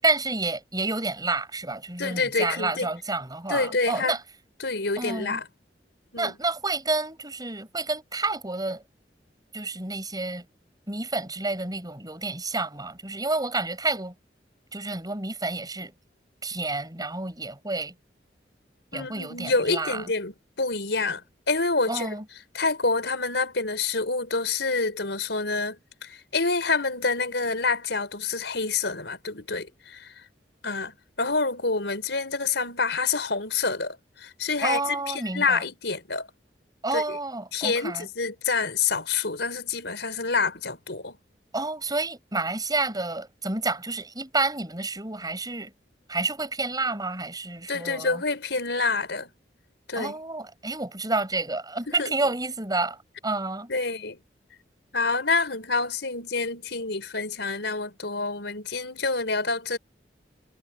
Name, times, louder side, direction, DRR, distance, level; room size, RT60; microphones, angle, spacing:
voice 1, 0.0-4.2 5.0-5.4 6.2-8.8 9.5-10.4 10.9-14.1 14.7-15.9 16.4-17.9 18.9-20.1 21.9-22.2 34.6-35.6 36.8-38.1 41.5-45.7 46.1-48.2 49.9-53.7, right 3 dB, 25° right, 7.4 m, -29 dB
voice 2, 2.0-2.9 3.5-4.2 4.6-5.5 6.1-6.3 18.9-21.2 21.5-22.1 22.5-30.1 30.6-36.3 36.9-37.2 37.5-41.2 47.7-49.3 49.9-50.1 51.9-52.1 53.7-54.2 54.9-59.8, left 4 dB, 75° left, 5.2 m, -27 dB
head